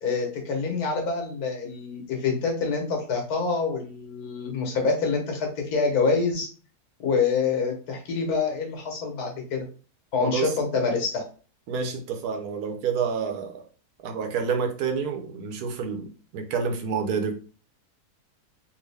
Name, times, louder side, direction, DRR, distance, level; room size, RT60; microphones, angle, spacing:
voice 1, 0.0-6.5 7.0-9.7 10.1-11.2, left 4 dB, 75° left, 2 dB, 1.5 m, -26 dB
voice 2, 10.2-10.5 11.7-13.6 14.0-17.3, right 6 dB, 80° right, 4 dB, 1.2 m, -28 dB
3.6 x 2.6 x 3.3 m, 0.38 s
omnidirectional pair, 1.6 m